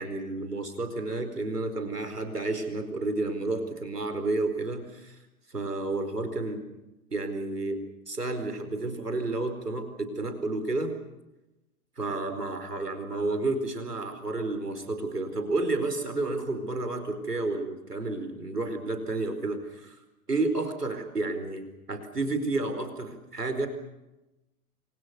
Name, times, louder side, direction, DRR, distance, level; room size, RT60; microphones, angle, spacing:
voice 1, 0.0-5.2 5.5-6.6 7.1-11.0 12.0-20.0 20.3-23.7, right 2 dB, 85° right, 8 dB, 4.7 m, -31 dB
29.5 x 24.0 x 6.9 m, 0.97 s
figure-of-eight pair, 100°, 46 cm